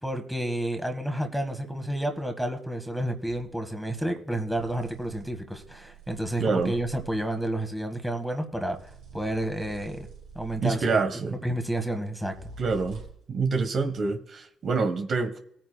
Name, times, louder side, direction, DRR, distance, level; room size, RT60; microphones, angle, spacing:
voice 1, 0.0-10.1 10.4-11.0 11.3-12.3, right 1 dB, ahead, 1.7 m, -30 dB
sound 1, 3.2-3.5 4.4-7.4 8.6-10.9 12.2-13.3, right 4 dB, 85° right, 3.9 m, -47 dB
voice 2, 6.4-6.7 10.6-11.4 12.6-13.0 13.3-15.4, right 4 dB, 55° right, 1.4 m, -26 dB
19.0 x 9.0 x 2.3 m
cardioid pair, 90°, 0 cm